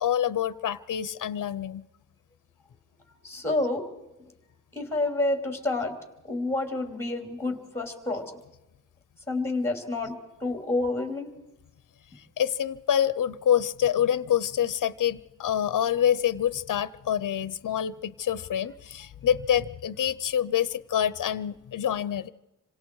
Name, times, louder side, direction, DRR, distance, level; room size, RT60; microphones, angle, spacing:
voice 1, 0.0-1.9 12.2-22.3, left 9 dB, 70° left, 17 dB, 0.7 m, -26 dB
voice 2, 3.2-3.9 4.7-6.0 6.2-8.3 9.3-11.3, left 2 dB, 10° left, 5 dB, 3.2 m, -29 dB
27.0 x 26.0 x 4.7 m, 0.94 s
wide cardioid pair, 170°, 32 cm